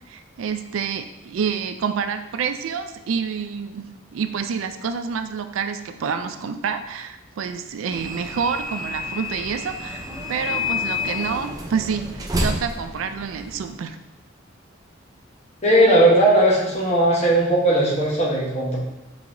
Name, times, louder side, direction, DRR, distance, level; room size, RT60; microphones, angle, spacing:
voice 1, 0.1-14.0, right 6 dB, 85° right, 8 dB, 0.4 m, -28 dB
sound 1, 7.9-13.7, left 2 dB, 20° right, 0.4 m, -29 dB
voice 2, 15.6-18.8, right 1 dB, 35° left, -4 dB, 1.0 m, -17 dB
4.7 x 3.9 x 2.6 m, 0.99 s
head